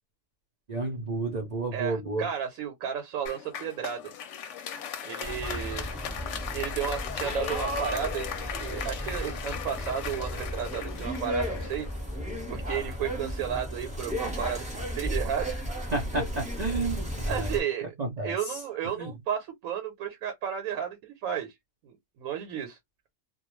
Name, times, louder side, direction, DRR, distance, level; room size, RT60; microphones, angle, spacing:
voice 1, 0.7-2.3 15.9-17.5 18.0-18.6 18.9-19.1, right 3 dB, 50° right, 0.5 m, -31 dB
voice 2, 1.7-4.1 5.0-5.9 6.5-11.9 12.5-15.6 17.3-17.9 18.2-21.5 21.8-22.8, right 9 dB, 85° right, 1.1 m, -33 dB
Applause, 3.3-12.6, left 8 dB, 65° left, 0.8 m, -38 dB
sound 1, 5.2-17.6, equal, 5° right, 0.7 m, -34 dB
2.3 x 2.2 x 3.0 m
omnidirectional pair, 1.4 m